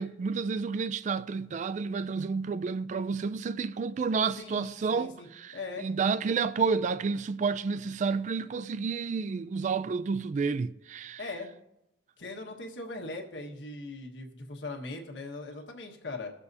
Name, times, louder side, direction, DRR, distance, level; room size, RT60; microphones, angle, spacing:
voice 1, 0.0-11.2, right 5 dB, 40° right, 0.3 m, -30 dB
voice 2, 4.3-5.3 5.5-5.9 11.2-11.5 12.2-16.3, left 3 dB, 80° left, 1.5 m, -40 dB
20.0 x 6.8 x 2.7 m
head